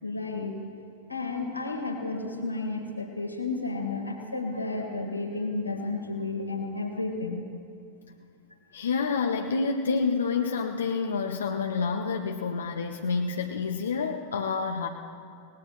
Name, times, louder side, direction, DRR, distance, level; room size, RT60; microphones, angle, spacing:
voice 1, 0.0-0.6 1.1-7.4, left 3 dB, 85° left, 3 dB, 1.9 m, -32 dB
voice 2, 8.7-14.9, left 5 dB, 70° left, 2 dB, 0.7 m, -28 dB
28.0 x 18.5 x 2.5 m, 2.3 s
figure-of-eight pair, 90°, 0 cm